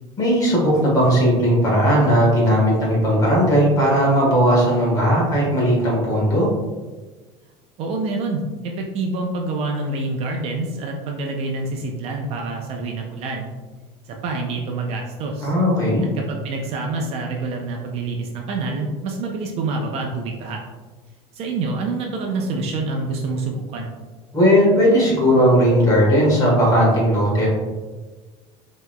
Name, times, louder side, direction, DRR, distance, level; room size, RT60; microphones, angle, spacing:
voice 1, 0.2-6.5 15.4-16.1 24.3-27.5, equal, 25° left, -4 dB, 1.4 m, -17 dB
voice 2, 7.8-13.5 14.1-15.5 16.1-20.6 21.3-23.9, right 3 dB, 45° right, 1 dB, 0.5 m, -27 dB
5.4 x 3.0 x 2.2 m, 1.3 s
cardioid pair, 150°, 15 cm